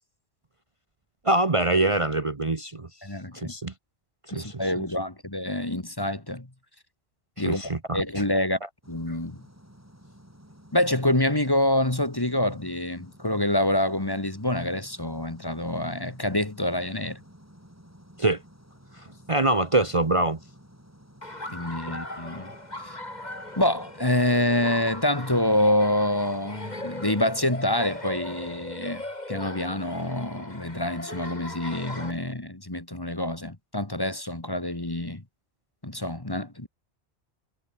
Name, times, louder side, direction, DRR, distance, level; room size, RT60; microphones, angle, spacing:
voice 1, 1.2-2.9 3.3-3.7 4.3-4.8 7.4-8.0 18.2-18.4 19.3-20.4, right 2 dB, 30° right, 1.2 m, -24 dB
voice 2, 3.0-3.5 4.3-6.5 7.4-7.6 7.9-8.6 8.9-9.4 10.7-17.2 21.5-22.5 22.8-23.0 23.6-29.0 29.3-35.2 35.8-36.7, left 1 dB, 20° left, 1.9 m, -26 dB
sound 1, 8.8-28.7, equal, 15° right, 8.0 m, -53 dB
Laughter, 21.2-32.1, left 1 dB, 40° left, 4.6 m, -39 dB
omnidirectional pair, 1.1 m